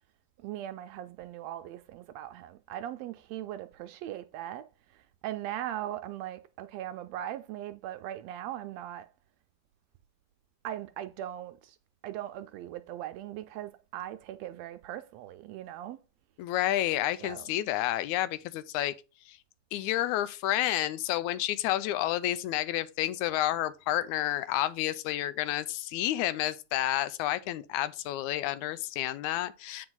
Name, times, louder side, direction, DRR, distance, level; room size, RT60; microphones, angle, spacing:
voice 1, 0.4-4.6 5.2-9.1 10.6-11.7 12.0-16.0 17.2-17.5, right 12 dB, 80° right, 1.6 m, -39 dB
voice 2, 16.4-18.9 19.3-19.4 19.7-29.9, left 14 dB, 90° left, 2.0 m, -30 dB
8.7 x 4.7 x 3.9 m
omnidirectional pair, 3.3 m